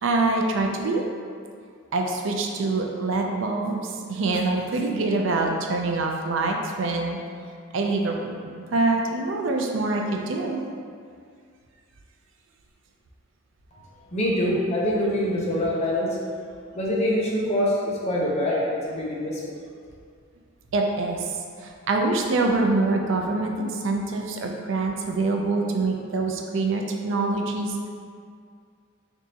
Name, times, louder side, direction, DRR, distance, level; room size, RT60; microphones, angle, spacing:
voice 1, 0.0-1.0 1.9-7.2 7.7-10.7 20.7-21.3 21.6-27.9, right 3 dB, 65° right, 2 dB, 0.4 m, -25 dB
voice 2, 14.1-16.2 16.7-19.4, left 1 dB, 30° left, -4 dB, 0.6 m, -24 dB
3.9 x 3.4 x 2.8 m, 2.2 s
head